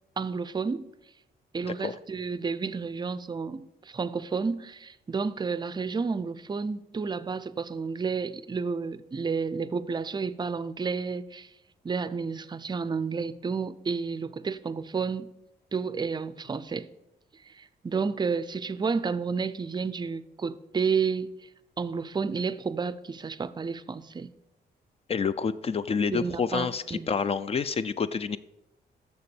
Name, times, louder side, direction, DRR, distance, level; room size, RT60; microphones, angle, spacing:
voice 1, 0.2-0.9 1.5-11.5 11.8-15.3 15.7-16.9 17.5-21.3 21.8-24.3 26.1-27.1, right 5 dB, 25° right, 0.5 m, -31 dB
voice 2, 25.1-28.4, left 5 dB, 35° left, 0.4 m, -28 dB
6.8 x 6.7 x 7.0 m
cardioid pair, 110°, 17 cm